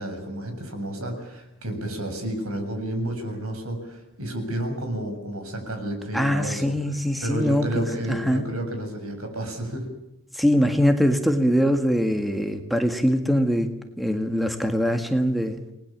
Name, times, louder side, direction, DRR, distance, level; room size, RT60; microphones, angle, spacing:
voice 1, 0.0-9.9, right 1 dB, 75° right, 5 dB, 7.3 m, -31 dB
voice 2, 6.1-8.4 10.3-13.7 14.0-15.6, equal, ahead, 5 dB, 1.7 m, -22 dB
29.0 x 20.0 x 7.4 m, 0.87 s
head